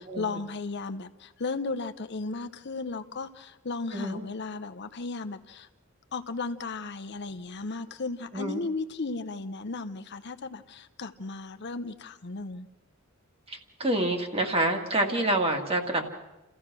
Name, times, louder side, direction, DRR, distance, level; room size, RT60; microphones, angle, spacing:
voice 1, 0.0-5.7 6.1-12.7, left 3 dB, 55° left, 8 dB, 0.8 m, -35 dB
voice 2, 13.5-16.1, right 1 dB, 30° right, 3 dB, 2.2 m, -27 dB
29.0 x 15.0 x 6.2 m, 1.0 s
head